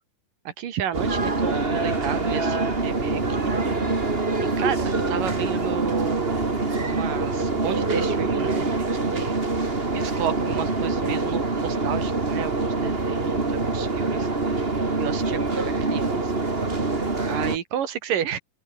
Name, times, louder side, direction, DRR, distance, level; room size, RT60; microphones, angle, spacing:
voice 1, 0.5-3.5 4.4-6.5 6.8-8.7 9.0-9.4 9.9-14.3 15.0-16.3 17.3-18.4, right 9 dB, 70° right, 3.5 m, -32 dB
sound 1, 0.9-17.6, right 3 dB, 20° right, 2.3 m, -25 dB
open air
omnidirectional pair, 4.2 m